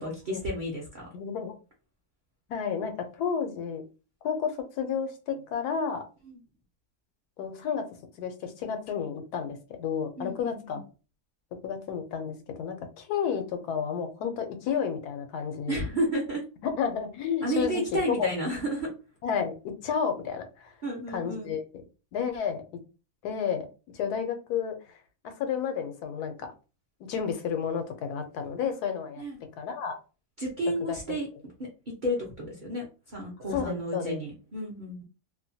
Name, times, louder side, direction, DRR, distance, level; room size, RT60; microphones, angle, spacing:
voice 1, 0.0-1.1 6.3-6.4 10.2-10.8 15.7-16.4 17.4-18.9 20.8-21.5 29.2-29.4 30.4-31.3 31.9-35.0, equal, 45° right, -3 dB, 0.6 m, -32 dB
voice 2, 1.1-1.5 2.5-3.8 4.2-6.0 7.4-7.9 8.2-10.8 11.6-15.8 16.6-18.3 19.2-20.7 21.1-21.6 22.1-22.6 23.2-23.7 23.9-25.0 25.2-26.5 27.1-30.0 30.8-31.2 33.5-34.2, left 7 dB, 80° left, 6 dB, 1.1 m, -31 dB
2.8 x 2.2 x 2.6 m, 0.33 s
omnidirectional pair, 1.7 m